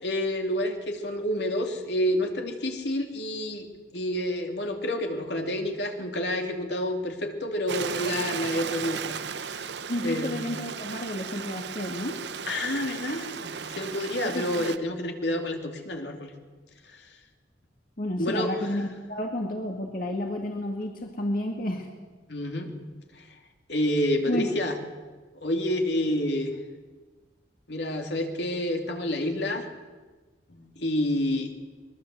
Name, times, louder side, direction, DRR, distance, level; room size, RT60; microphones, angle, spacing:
voice 1, 0.0-3.7 3.9-9.6 10.0-10.4 12.5-16.3 18.2-18.7 22.3-22.7 23.7-24.8 25.4-26.5 27.7-29.7 30.5-31.5, left 1 dB, 70° left, 3 dB, 2.9 m, -29 dB
Stream, 7.7-14.8, right 6 dB, 70° right, 0.8 m, -35 dB
voice 2, 9.9-12.2 14.2-14.7 18.0-21.9 24.3-24.5, left 1 dB, 50° left, 2 dB, 2.1 m, -31 dB
23.5 x 21.5 x 7.9 m, 1.3 s
head